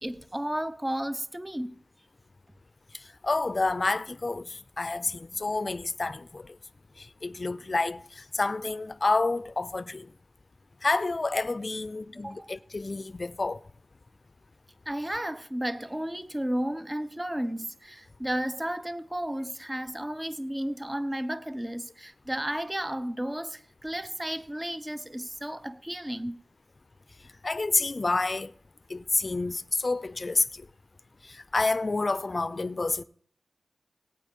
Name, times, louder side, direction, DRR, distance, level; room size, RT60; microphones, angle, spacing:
voice 1, 0.0-1.8 12.2-12.5 14.9-26.4, right 1 dB, 15° right, 1.0 m, -33 dB
voice 2, 3.2-6.5 7.0-10.1 10.8-13.6 27.4-28.5 28.9-30.4 31.2-33.0, left 3 dB, 45° left, 0.6 m, -29 dB
18.0 x 9.0 x 5.4 m
cardioid pair, 50°, 0 cm